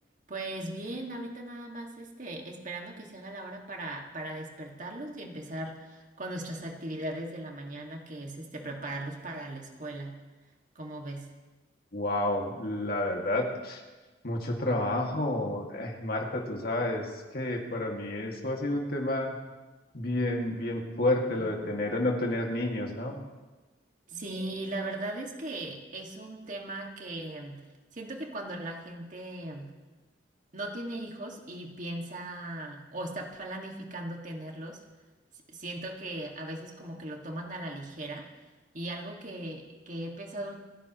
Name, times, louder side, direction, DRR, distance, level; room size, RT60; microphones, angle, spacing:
voice 1, 0.3-10.2 10.8-11.3 21.4-21.9 24.1-27.6 27.9-29.7 30.5-34.8 35.5-38.3 38.7-40.6, right 1 dB, 45° right, 1 dB, 2.0 m, -38 dB
voice 2, 11.9-13.8 14.2-19.4 19.9-23.2, left 1 dB, 55° left, 0 dB, 2.2 m, -30 dB
28.0 x 11.0 x 3.1 m, 1.2 s
head